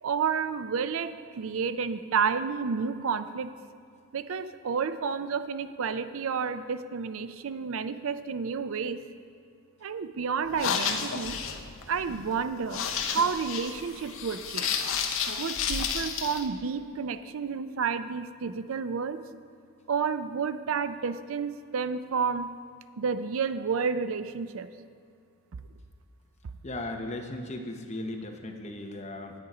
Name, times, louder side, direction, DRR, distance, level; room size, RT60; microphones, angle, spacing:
voice 1, 0.0-3.5 4.1-9.0 9.8-11.4 11.9-14.7 15.4-19.2 19.9-22.5 23.0-24.7, right 6 dB, 65° right, 12 dB, 0.4 m, -30 dB
sound 1, 10.4-16.4, left 6 dB, 65° left, 0.7 m, -31 dB
voice 2, 26.6-29.3, left 1 dB, 30° left, 3 dB, 0.8 m, -37 dB
9.6 x 9.1 x 4.9 m, 2.4 s
head